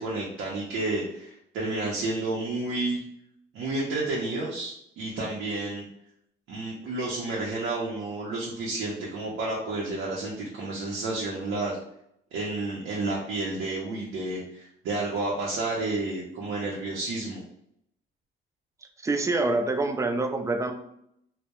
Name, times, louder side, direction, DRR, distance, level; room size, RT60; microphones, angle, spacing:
voice 1, 0.0-3.0 3.5-5.8 6.5-11.8 12.3-17.4, right 2 dB, 85° right, -4 dB, 0.5 m, -31 dB
voice 2, 19.0-20.7, right 2 dB, 15° right, 5 dB, 0.3 m, -26 dB
2.1 x 2.0 x 2.8 m, 0.74 s
cardioid pair, 90°, 20 cm